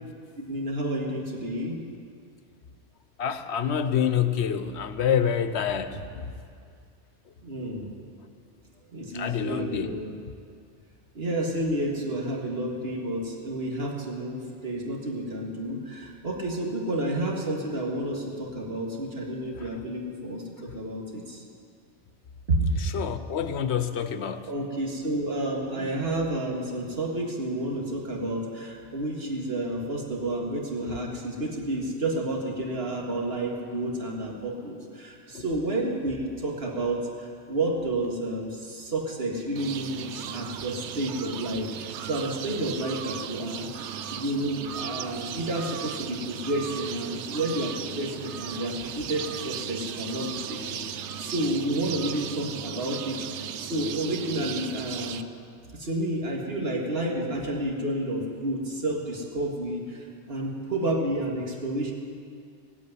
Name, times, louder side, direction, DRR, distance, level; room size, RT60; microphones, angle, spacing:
voice 1, 0.4-1.8 7.4-7.9 8.9-10.1 11.2-20.4 20.7-21.4 22.5-22.7 24.5-55.2 55.7-61.9, right 1 dB, 60° right, -1 dB, 2.2 m, -30 dB
voice 2, 3.2-6.3 9.1-10.0 19.6-19.8 22.8-24.5 35.3-35.4, left 8 dB, 70° left, 10 dB, 1.0 m, -27 dB
sound 1, 39.6-55.2, right 8 dB, 75° right, 0.9 m, -36 dB
17.5 x 8.5 x 9.3 m, 2.3 s
omnidirectional pair, 1.2 m